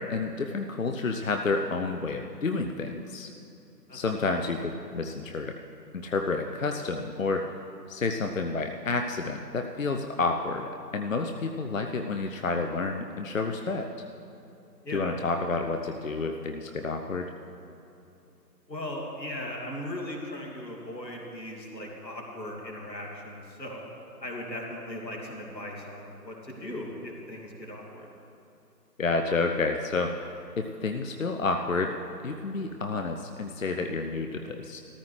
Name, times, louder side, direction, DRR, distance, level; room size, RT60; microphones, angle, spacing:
voice 1, 0.0-3.3 3.9-5.5 5.9-7.5 7.9-13.9 14.9-17.3 29.0-30.1 30.6-32.0 32.2-34.8, left 3 dB, 55° left, 4 dB, 0.7 m, -30 dB
voice 2, 3.9-4.3 14.8-15.1 18.7-23.8 24.2-28.1, left 1 dB, 85° left, -1 dB, 2.6 m, -38 dB
14.5 x 14.0 x 3.2 m, 2.8 s
figure-of-eight pair, 150°, 50 cm